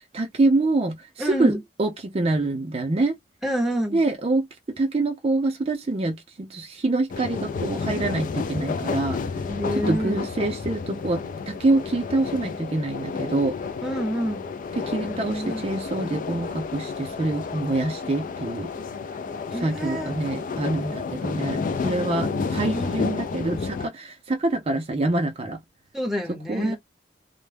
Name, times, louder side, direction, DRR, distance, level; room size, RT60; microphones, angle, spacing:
voice 1, 0.1-1.5 1.8-3.1 3.9-4.5 4.8-9.2 9.9-13.6 14.8-18.7 19.6-25.6 26.3-26.8, right 2 dB, 35° right, 0.4 m, -25 dB
voice 2, 1.2-1.6 3.4-4.0 9.5-10.2 13.8-14.4 15.0-15.6 19.5-20.1 22.6-22.9 25.9-26.8, equal, ahead, 0.7 m, -28 dB
sound 1, 7.1-23.9, left 5 dB, 45° left, 0.3 m, -31 dB
2.2 x 2.0 x 3.2 m
head